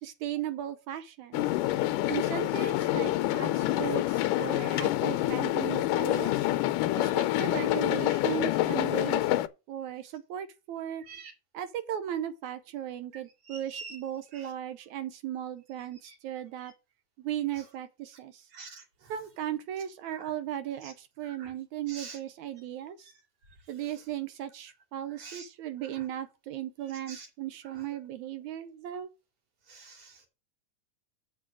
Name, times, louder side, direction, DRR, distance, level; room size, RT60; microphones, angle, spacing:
voice 1, 0.0-1.5 2.1-6.5 7.0-9.3 9.7-11.0 11.5-16.7 17.2-18.5 19.1-23.1 23.7-29.1, right 11 dB, 75° right, 2.0 m, -36 dB
sound 1, 1.3-9.5, left 15 dB, 85° left, 2.2 m, -27 dB
voice 2, 13.5-14.0 14.3-14.5 16.1-16.2 18.5-18.8 20.1-20.3 21.4-21.5 21.9-22.2 25.2-25.4 27.1-27.3 29.7-30.3, right 4 dB, 55° right, 3.5 m, -45 dB
7.7 x 6.1 x 6.2 m
omnidirectional pair, 3.7 m